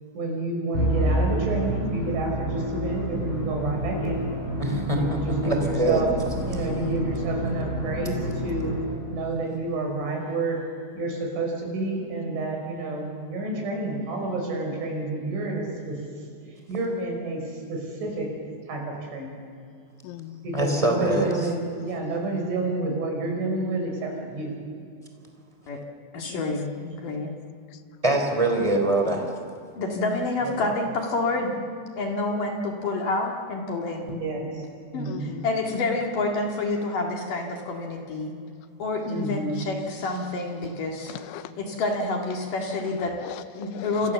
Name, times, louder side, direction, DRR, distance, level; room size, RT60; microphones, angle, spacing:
voice 1, 0.1-4.2 5.0-6.1 6.4-8.7 9.1-10.6 10.9-16.0 16.7-18.3 18.7-19.4 20.4-24.5 27.0-27.1 30.4-30.7 34.1-34.6 34.9-35.4 39.1-39.6, right 2 dB, 80° right, 1 dB, 8.1 m, -29 dB
Musical instrument, 0.7-9.3, equal, 15° left, 4.4 m, -29 dB
voice 2, 4.6-6.0 20.5-21.5 28.0-29.2, right 2 dB, 10° right, 3 dB, 3.3 m, -24 dB
voice 3, 5.7-6.1 20.0-20.5 26.3-26.6 29.0-29.3 35.1-35.6 40.0-40.3 41.1-41.5 42.7-44.1, left 12 dB, 85° left, 10 dB, 3.4 m, -41 dB
voice 4, 26.1-27.3 29.8-34.1 34.9-38.3 38.8-41.1 41.6-43.1 43.5-44.1, left 2 dB, 50° left, 1 dB, 3.4 m, -28 dB
29.5 x 27.0 x 7.1 m, 2.4 s
omnidirectional pair, 5.4 m